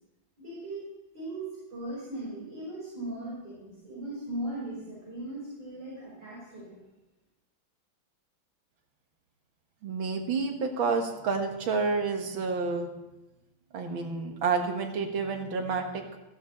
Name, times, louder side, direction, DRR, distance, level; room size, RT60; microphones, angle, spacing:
voice 1, 0.4-0.8 1.1-6.8, right 1 dB, 65° right, -10 dB, 6.3 m, -38 dB
voice 2, 9.8-12.9 13.7-16.2, right 4 dB, 85° right, 4 dB, 2.2 m, -29 dB
14.0 x 11.5 x 4.3 m, 0.97 s
omnidirectional pair, 2.1 m